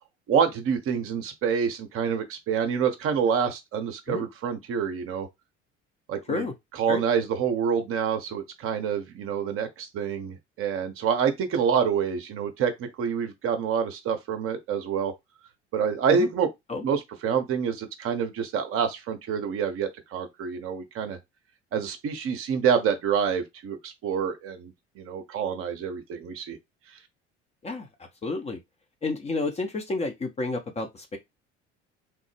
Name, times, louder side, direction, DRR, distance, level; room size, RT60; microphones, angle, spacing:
voice 1, 0.3-5.3 6.1-6.5 6.7-15.1 15.7-16.5 16.8-21.2 21.7-26.6, right 7 dB, 40° right, 0.7 m, -27 dB
voice 2, 28.2-28.6 29.0-31.2, left 3 dB, 20° left, 0.6 m, -30 dB
3.2 x 2.0 x 3.1 m
figure-of-eight pair, 60°, 35 cm